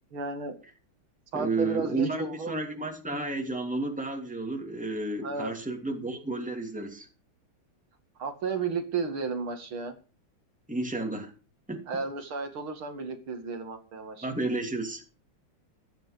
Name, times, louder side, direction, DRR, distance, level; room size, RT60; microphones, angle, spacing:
voice 1, 0.1-0.6 1.3-2.5 5.2-5.5 8.2-9.9 11.9-14.3, right 4 dB, 75° right, 6 dB, 3.0 m, -33 dB
voice 2, 1.3-7.1 10.7-11.3 11.7-11.8 14.2-15.0, right 2 dB, 5° right, 4 dB, 2.6 m, -31 dB
15.5 x 11.5 x 5.2 m, 0.35 s
omnidirectional pair, 2.3 m